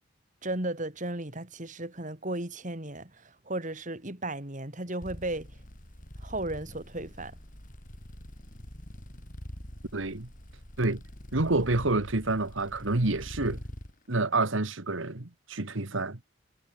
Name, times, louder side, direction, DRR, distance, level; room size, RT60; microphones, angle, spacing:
voice 1, 0.4-5.5 6.2-7.4, right 2 dB, 40° right, 3.2 m, -35 dB
sound 1, 5.0-13.9, equal, 40° left, 4.9 m, -45 dB
voice 2, 9.9-10.3 10.8-11.0 11.3-13.6 14.1-16.2, right 2 dB, 85° right, 1.8 m, -28 dB
head